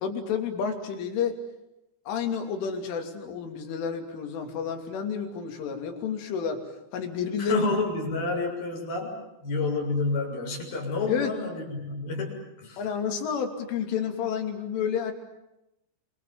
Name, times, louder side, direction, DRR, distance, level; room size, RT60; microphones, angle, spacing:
voice 1, 0.0-1.4 2.1-6.6 6.9-7.6 11.1-11.3 12.8-15.1, left 7 dB, 75° left, 5 dB, 5.3 m, -30 dB
voice 2, 7.4-9.1 9.4-12.8, left 3 dB, 45° left, 0 dB, 8.5 m, -29 dB
27.5 x 27.5 x 7.6 m, 0.88 s
omnidirectional pair, 5.8 m